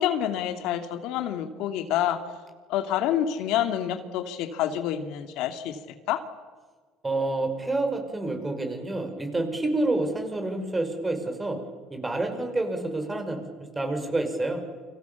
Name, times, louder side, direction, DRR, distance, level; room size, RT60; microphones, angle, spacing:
voice 1, 0.0-2.2 2.7-5.8 6.1-6.2, left 10 dB, 70° left, 8 dB, 2.4 m, -27 dB
voice 2, 7.0-11.6 11.9-14.6, right 2 dB, 15° right, 5 dB, 6.0 m, -28 dB
29.0 x 26.0 x 7.1 m, 1.5 s
cardioid pair, 125°, 0 cm